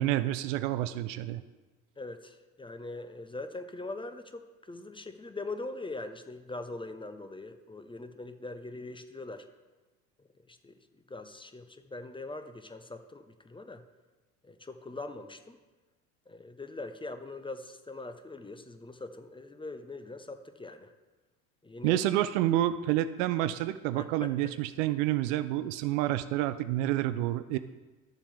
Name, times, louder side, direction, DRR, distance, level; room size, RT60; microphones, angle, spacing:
voice 1, 0.0-1.4 21.8-27.6, right 14 dB, 60° right, 13 dB, 0.6 m, -28 dB
voice 2, 2.0-9.5 10.2-10.8 11.1-13.8 14.4-15.6 16.3-20.9 21.6-22.0 24.0-24.3, left 2 dB, 10° left, 8 dB, 0.7 m, -42 dB
13.0 x 7.1 x 3.5 m, 1.2 s
hypercardioid pair, 65°, 44 cm